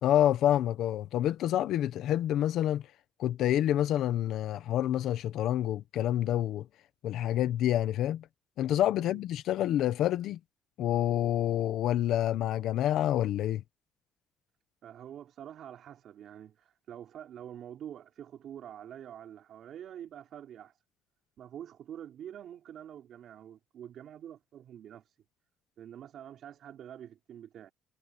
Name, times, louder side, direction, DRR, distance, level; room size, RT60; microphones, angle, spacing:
voice 1, 0.0-2.8 3.2-6.6 7.0-8.2 8.6-10.4 10.8-13.6, left 12 dB, 65° left, 1.0 m, -28 dB
voice 2, 14.8-20.8 21.4-25.2 25.8-27.7, right 10 dB, 50° right, 5.2 m, -46 dB
cardioid pair, 165°, 0 cm